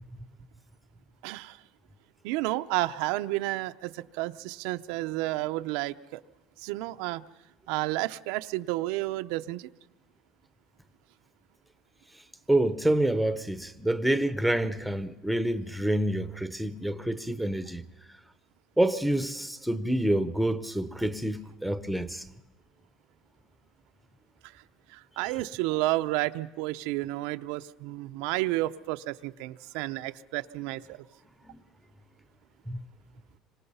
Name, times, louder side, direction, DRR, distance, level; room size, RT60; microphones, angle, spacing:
voice 1, 1.2-1.6 2.2-6.2 6.6-7.2 7.7-9.7 24.4-24.5 24.9-31.0, right 18 dB, 85° right, 0.7 m, -31 dB
voice 2, 12.5-17.8 18.8-22.2 31.4-31.6 32.7-32.8, right 1 dB, ahead, 0.8 m, -27 dB
26.5 x 25.0 x 5.6 m
cardioid pair, 175°, 0 cm